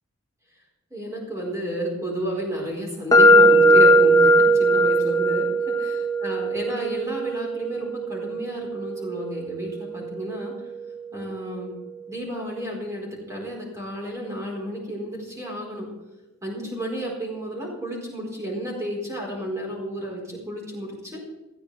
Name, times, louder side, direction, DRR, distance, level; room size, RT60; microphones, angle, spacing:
voice 1, 0.9-5.5 5.8-10.5 11.1-11.7 12.1-15.9 16.4-21.2, equal, 15° right, -3 dB, 4.5 m, -31 dB
sound 1, 3.1-11.0, right 1 dB, 15° left, 1.3 m, -19 dB
20.0 x 14.5 x 3.4 m, 1.1 s
head